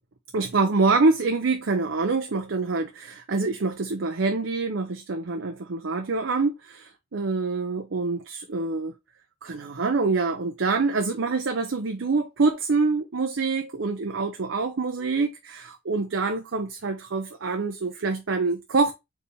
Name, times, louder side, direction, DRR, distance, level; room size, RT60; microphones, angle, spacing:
voice 1, 0.3-8.9 9.4-18.9, right 3 dB, 85° right, 0.7 m, -25 dB
4.6 x 3.4 x 3.3 m
head